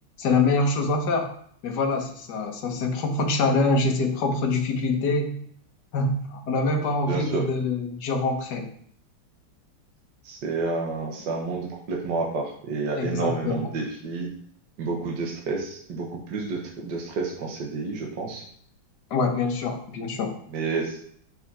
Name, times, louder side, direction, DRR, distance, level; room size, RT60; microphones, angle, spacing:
voice 1, 0.2-1.3 1.6-5.4 5.9-8.7 13.0-13.7 19.1-20.4, left 3 dB, 55° left, 3 dB, 1.6 m, -25 dB
voice 2, 7.1-7.4 10.2-14.3 14.8-18.4 20.5-21.0, right 4 dB, 55° right, -1 dB, 1.8 m, -30 dB
7.5 x 5.6 x 4.3 m, 0.62 s
omnidirectional pair, 2.4 m